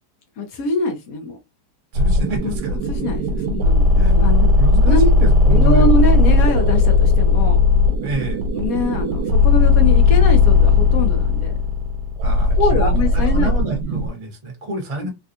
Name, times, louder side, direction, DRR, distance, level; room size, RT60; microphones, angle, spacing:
voice 1, 0.4-1.4 2.4-4.5 4.8-5.0 5.4-7.6 8.5-11.5 12.6-13.5 15.0-15.1, left 2 dB, 65° left, 1.0 m, -23 dB
voice 2, 1.9-2.8 4.0-5.9 8.0-8.4 12.2-15.1, right 2 dB, 25° right, 0.9 m, -28 dB
sound 1, 1.9-14.1, left 3 dB, 80° right, 1.2 m, -16 dB
3.4 x 2.3 x 2.6 m
omnidirectional pair, 1.8 m